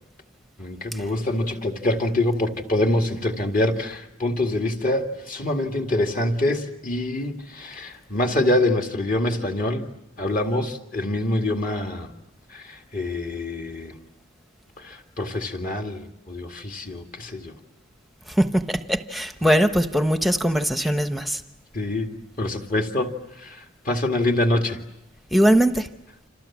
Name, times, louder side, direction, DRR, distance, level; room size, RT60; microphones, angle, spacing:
voice 1, 0.6-9.9 10.2-12.1 12.5-14.0 14.8-17.5 20.8-20.9 21.7-24.8, left 1 dB, 40° left, 4 dB, 2.1 m, -25 dB
voice 2, 18.3-21.4 25.3-25.9, equal, ahead, 8 dB, 1.0 m, -21 dB
28.5 x 27.0 x 7.3 m, 0.84 s
head